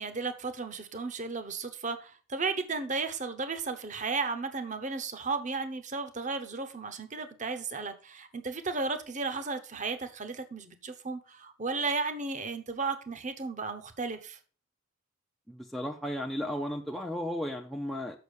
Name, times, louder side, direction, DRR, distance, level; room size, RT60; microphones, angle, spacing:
voice 1, 0.0-14.4, right 4 dB, 35° right, 0.9 m, -34 dB
voice 2, 15.5-18.2, equal, ahead, 0.5 m, -34 dB
6.9 x 6.0 x 6.3 m
head